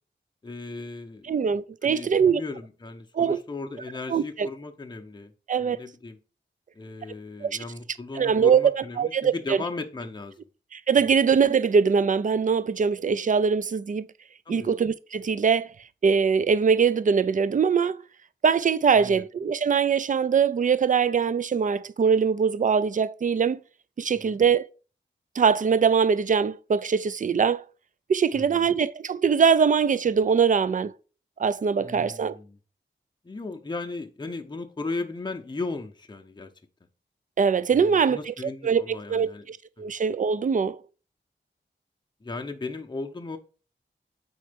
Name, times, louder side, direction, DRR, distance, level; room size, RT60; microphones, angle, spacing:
voice 1, 0.4-1.3 1.8-5.3 5.6-6.2 6.7-10.4 14.5-14.7 18.9-19.2 24.2-24.4 28.3-28.6 31.8-32.6 33.2-36.5 37.7-39.4 42.2-43.4, left 3 dB, 25° left, 0.7 m, -36 dB
voice 2, 1.2-2.4 3.1-3.4 4.1-4.5 5.5-5.8 7.4-7.6 8.2-9.6 10.7-14.1 14.5-15.7 16.0-18.0 18.4-23.6 24.0-24.6 25.4-27.6 28.1-30.9 31.4-32.4 37.4-38.3 38.6-40.8, right 6 dB, 45° right, 0.4 m, -22 dB
4.3 x 4.3 x 5.1 m
wide cardioid pair, 70°, 19 cm